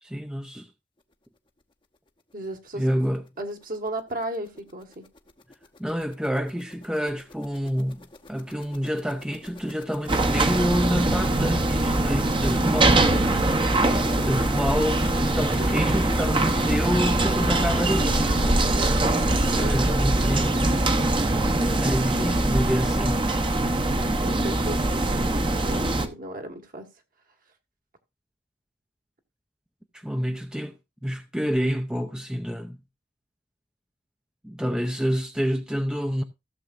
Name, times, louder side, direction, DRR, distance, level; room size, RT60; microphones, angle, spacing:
voice 1, 0.0-0.7 2.7-3.3 5.8-13.3 13.6-18.6 19.5-20.6 21.8-23.3 29.9-30.7 31.0-32.8 34.4-36.2, equal, 5° right, 0.6 m, -28 dB
voice 2, 2.3-2.8 3.4-5.0 14.2-14.3 18.6-18.9 19.6-20.3 24.2-26.9, right 1 dB, 50° right, 1.5 m, -35 dB
sound 1, 3.0-3.1 3.5-3.6 3.9-18.5, left 2 dB, 30° left, 0.8 m, -40 dB
sound 2, 10.1-26.1, right 2 dB, 30° right, 0.9 m, -22 dB
15.5 x 7.1 x 2.5 m
head